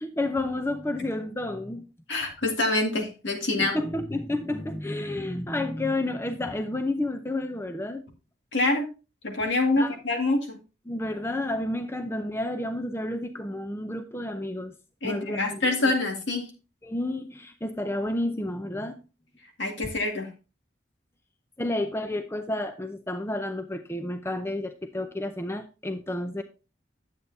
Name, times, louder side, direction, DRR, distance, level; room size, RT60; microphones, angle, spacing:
voice 1, 0.0-1.9 3.6-8.0 9.8-9.9 10.9-14.7 15.0-15.6 16.8-19.0 21.6-26.4, left 1 dB, 15° left, 0.5 m, -30 dB
voice 2, 2.1-3.7 8.5-8.9 9.2-10.6 15.0-16.5 19.6-20.3, left 2 dB, 75° left, 2.1 m, -26 dB
9.9 x 8.1 x 2.7 m
head